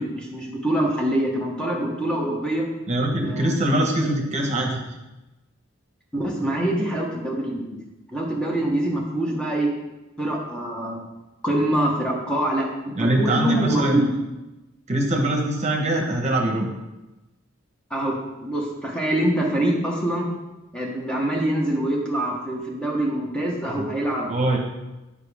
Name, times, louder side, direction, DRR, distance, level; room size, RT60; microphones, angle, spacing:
voice 1, 0.0-2.7 3.2-3.8 6.1-7.8 8.1-9.7 10.2-11.1 11.4-14.1 17.9-20.3 20.7-24.6, right 1 dB, 5° left, -2 dB, 1.0 m, -25 dB
voice 2, 2.9-4.8 6.4-6.5 13.0-14.0 14.9-16.7 23.8-23.9 24.3-24.6, right 1 dB, 35° right, 1 dB, 1.0 m, -23 dB
9.1 x 4.9 x 3.4 m, 1.0 s
head